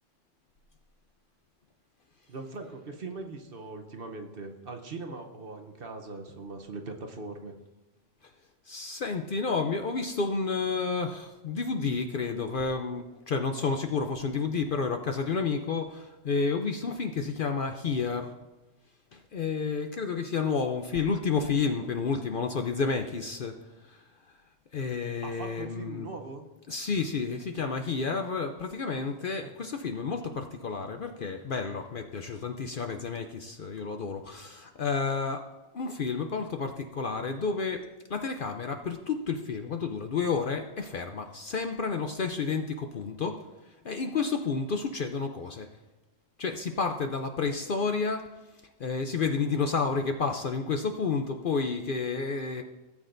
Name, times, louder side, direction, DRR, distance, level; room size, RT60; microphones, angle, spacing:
voice 1, 2.3-7.5 25.2-26.5 29.4-29.5, right 3 dB, 50° right, 4 dB, 1.0 m, -40 dB
voice 2, 8.7-18.3 19.1-23.6 23.9-24.0 24.7-26.1 26.7-35.4 35.7-43.4 43.8-45.7 46.4-48.3 48.8-52.6, left 4 dB, 55° left, 5 dB, 0.7 m, -30 dB
17.0 x 8.5 x 2.6 m, 1.1 s
omnidirectional pair, 1.3 m